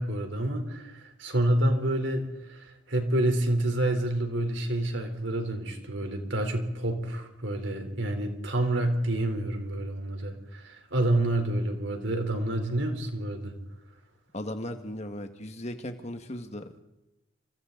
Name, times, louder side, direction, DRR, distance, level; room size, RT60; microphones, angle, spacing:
voice 1, 0.0-13.5, right 1 dB, 70° right, 5 dB, 3.9 m, -28 dB
voice 2, 14.3-16.8, left 1 dB, 35° left, 6 dB, 1.8 m, -37 dB
28.5 x 25.5 x 4.0 m, 0.95 s
head